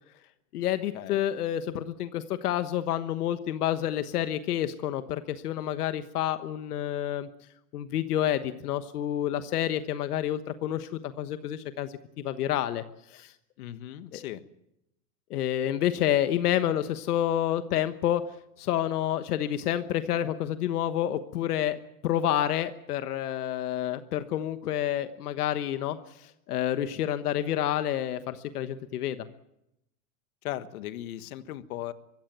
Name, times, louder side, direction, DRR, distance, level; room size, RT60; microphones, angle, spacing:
voice 1, 0.5-7.3 7.7-11.9 12.2-13.3 14.1-14.2 15.3-18.2 18.6-29.3, left 11 dB, 90° left, 11 dB, 1.3 m, -29 dB
voice 2, 13.6-14.4 30.4-31.9, left 13 dB, 70° left, 12 dB, 1.6 m, -37 dB
24.0 x 15.0 x 9.3 m, 0.84 s
supercardioid pair, 150°, 44 cm